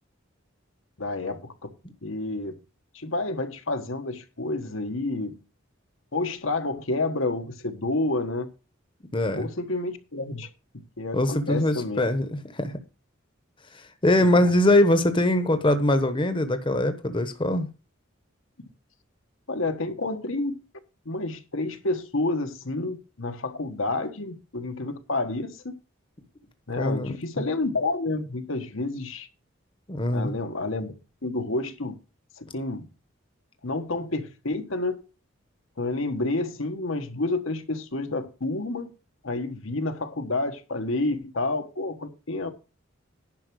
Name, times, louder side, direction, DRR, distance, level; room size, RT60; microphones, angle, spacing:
voice 1, 1.0-1.7 2.0-2.6 2.9-5.3 6.1-8.5 9.3-10.5 11.0-12.0 14.2-14.5 19.5-20.5 21.0-25.7 26.7-29.3 30.1-30.9 31.2-31.9 32.4-32.9 33.6-35.0 35.8-38.9 39.2-42.5, left 2 dB, 80° left, 1.4 m, -29 dB
voice 2, 9.1-9.5 11.1-12.8 13.7-17.7 26.8-27.2 29.9-30.3, left 1 dB, 25° left, 1.0 m, -22 dB
10.5 x 5.8 x 6.2 m
head